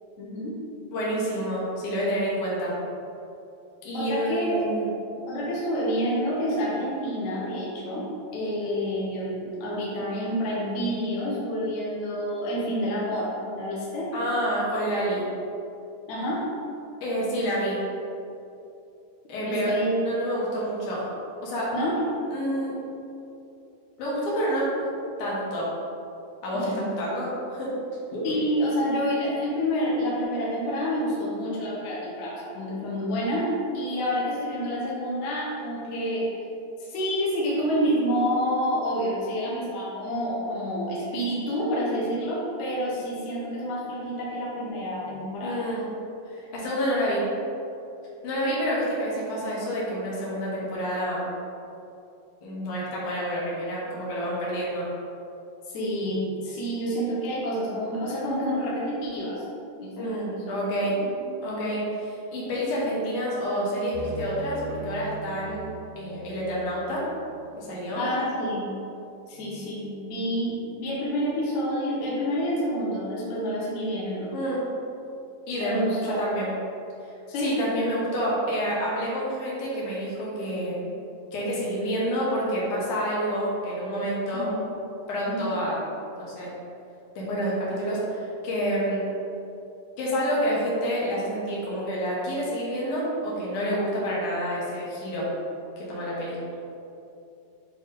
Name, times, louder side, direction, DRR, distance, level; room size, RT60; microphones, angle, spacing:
voice 1, 0.2-0.6 3.9-4.7 5.3-14.1 16.1-16.5 19.4-19.9 21.7-22.0 26.5-26.9 28.2-36.3 36.8-45.6 55.7-59.5 59.8-60.6 61.2-61.3 68.0-68.7 69.3-74.3 75.6-76.2 77.3-77.6 84.3-84.6 85.3-85.6, equal, 85° left, -6 dB, 1.6 m, -28 dB
voice 2, 0.9-2.7 3.8-4.9 14.1-15.3 17.0-17.8 19.3-21.0 21.4-21.7 22.3-22.8 24.0-24.9 25.2-25.7 26.4-27.7 28.1-28.2 45.4-45.9 46.3-47.2 48.2-51.3 52.4-54.9 60.0-61.0 61.4-65.7 66.0-67.0 67.6-68.0 74.3-74.6 75.5-76.5 77.4-80.9 81.3-84.5 85.1-85.8 86.2-86.5 87.2-89.1 90.0-95.3 95.8-96.4, equal, 65° left, -6 dB, 2.1 m, -28 dB
sound 1, 63.9-67.7, right 2 dB, 80° right, 2.7 m, -40 dB
8.7 x 3.0 x 3.6 m, 2.7 s
omnidirectional pair, 4.8 m